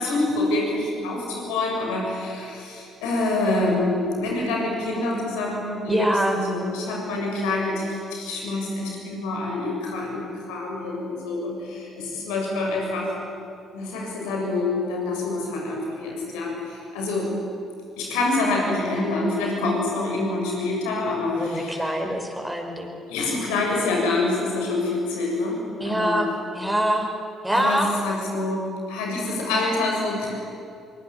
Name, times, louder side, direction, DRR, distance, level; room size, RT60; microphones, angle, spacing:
voice 1, 0.0-13.1 13.7-17.3 18.0-22.0 23.1-26.2 27.5-30.3, left 2 dB, 70° left, -1 dB, 7.2 m, -26 dB
voice 2, 5.9-6.4 21.3-23.0 25.8-27.1 27.4-27.9, right 1 dB, 10° right, 3 dB, 5.2 m, -24 dB
24.0 x 24.0 x 9.1 m, 2.6 s
figure-of-eight pair, 45°, 0 cm